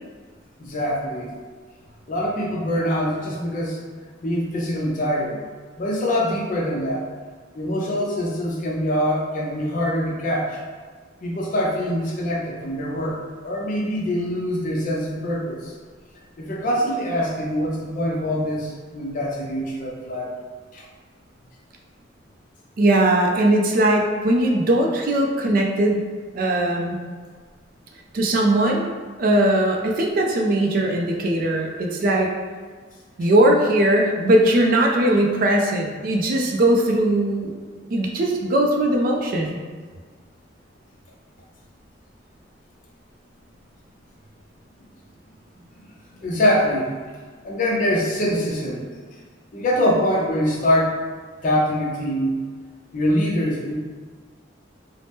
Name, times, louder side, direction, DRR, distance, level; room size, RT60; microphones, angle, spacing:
voice 1, 0.6-1.3 2.1-3.8 4.2-5.4 5.8-7.1 7.5-10.6 11.2-15.7 16.4-20.3 20.7-20.9 45.8-45.9 46.1-46.9 47.4-48.9 49.5-51.0 51.4-52.4 52.9-53.7, equal, 45° left, -2 dB, 0.5 m, -24 dB
voice 2, 22.8-26.0 26.3-27.0 28.1-28.9 29.2-32.3 33.2-37.6 37.9-39.6, right 1 dB, 45° right, 1 dB, 0.3 m, -19 dB
2.7 x 2.0 x 3.4 m, 1.5 s
head